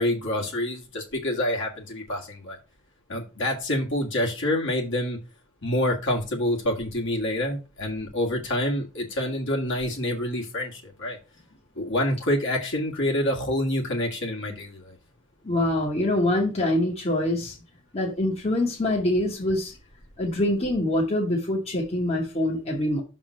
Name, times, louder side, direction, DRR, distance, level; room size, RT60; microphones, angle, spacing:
voice 1, 0.0-2.6 3.1-5.2 5.6-11.2 11.8-15.0, left 1 dB, 55° left, 0 dB, 1.9 m, -27 dB
voice 2, 15.4-17.5 17.9-19.7 20.2-23.0, left 1 dB, 30° left, -1 dB, 1.3 m, -24 dB
6.4 x 3.7 x 6.2 m, 0.31 s
head